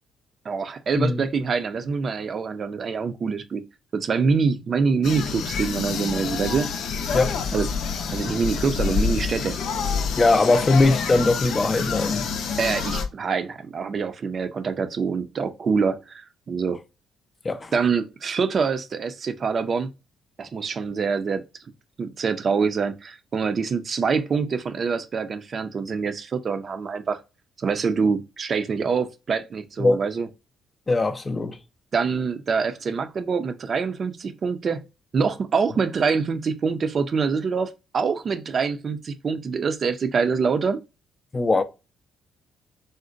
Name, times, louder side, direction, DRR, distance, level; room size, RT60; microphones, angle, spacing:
voice 1, 0.4-3.6 3.9-6.7 7.5-7.7 8.1-9.6 12.6-16.8 17.7-19.9 20.4-21.4 22.0-27.2 27.6-30.3 31.9-34.9 35.1-40.8, right 5 dB, 50° right, 0.5 m, -25 dB
sound 1, 5.0-13.1, left 5 dB, 75° left, 0.5 m, -27 dB
voice 2, 10.2-12.3 17.4-17.7 29.8-30.0 30.9-31.6 41.3-41.6, left 3 dB, 25° left, 0.4 m, -20 dB
3.8 x 2.1 x 2.5 m
cardioid pair, 90°, 0 cm